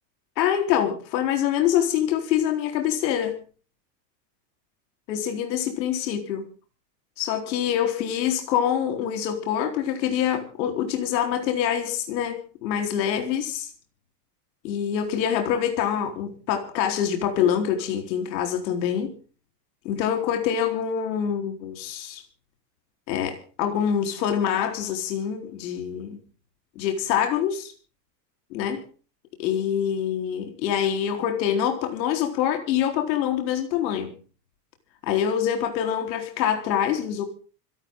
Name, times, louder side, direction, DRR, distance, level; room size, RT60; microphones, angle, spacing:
voice 1, 0.4-3.4 5.1-6.4 7.2-13.7 14.6-19.1 19.8-22.2 23.1-26.2 26.8-27.7 28.5-28.8 29.4-34.1 35.0-37.2, left 9 dB, 80° left, 4.2 m, -25 dB
26.5 x 13.0 x 3.8 m
supercardioid pair, 175°, 50 cm